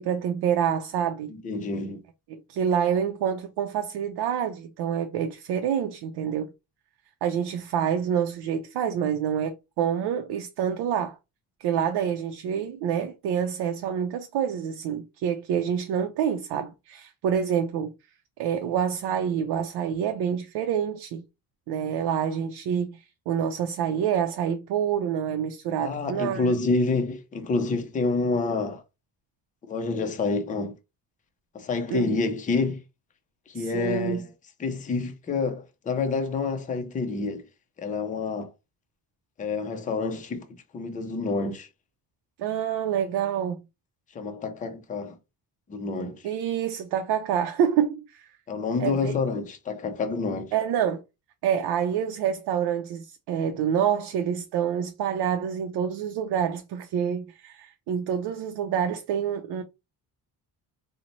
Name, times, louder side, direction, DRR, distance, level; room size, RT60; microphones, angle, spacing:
voice 1, 0.0-1.3 2.3-6.5 7.2-11.2 11.6-17.9 18.4-21.2 21.7-26.5 31.9-32.2 33.5-34.2 42.4-43.6 46.2-48.3 48.8-49.1 50.5-51.0 51.4-59.6, right 8 dB, 75° right, 0.6 m, -27 dB
voice 2, 1.3-2.0 25.8-28.8 29.7-30.7 31.5-32.8 33.5-34.2 34.6-37.4 37.8-38.5 39.4-40.5 40.7-41.7 44.1-45.2 45.7-46.2 48.5-50.5, left 3 dB, 20° left, 0.4 m, -28 dB
3.9 x 2.1 x 2.9 m
cardioid pair, 165°, 40 cm